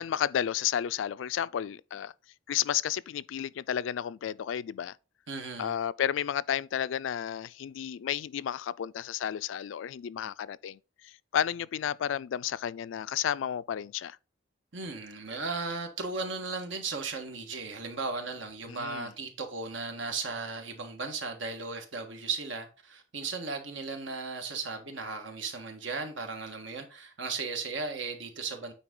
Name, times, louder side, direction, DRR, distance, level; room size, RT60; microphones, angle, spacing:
voice 1, 0.0-2.1 2.5-5.0 5.6-14.2 18.7-19.1, left 9 dB, 85° left, 0.3 m, -32 dB
voice 2, 5.3-5.7 14.7-28.7, right 4 dB, 85° right, 1.5 m, -36 dB
9.0 x 4.2 x 3.8 m
head